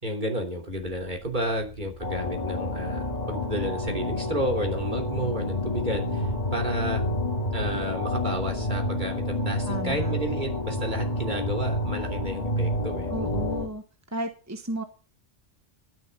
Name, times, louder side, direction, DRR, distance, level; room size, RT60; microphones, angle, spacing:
voice 1, 0.0-7.0 7.5-13.1, equal, 40° right, 3 dB, 3.4 m, -31 dB
sound 1, 0.6-13.7, equal, 65° right, 8.5 m, -44 dB
sound 2, 2.0-13.7, left 1 dB, 30° left, 2.2 m, -29 dB
voice 2, 9.7-10.1 13.1-13.8 14.1-14.8, right 1 dB, 15° right, 7 dB, 1.1 m, -33 dB
12.0 x 10.5 x 5.4 m, 0.35 s
omnidirectional pair, 1.2 m